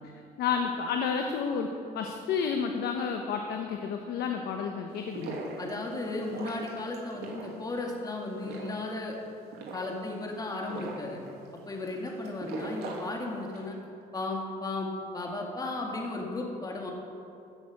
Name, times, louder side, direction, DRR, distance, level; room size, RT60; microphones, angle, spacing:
voice 1, 0.4-5.5, left 6 dB, 75° left, 4 dB, 1.1 m, -31 dB
sound 1, 4.9-13.7, right 3 dB, 75° right, 2.8 m, -42 dB
voice 2, 5.6-9.2 9.7-11.2 11.7-13.8 14.1-16.9, left 2 dB, 20° left, 0 dB, 2.1 m, -35 dB
14.5 x 7.0 x 8.4 m, 2.6 s
cardioid pair, 110°, 17 cm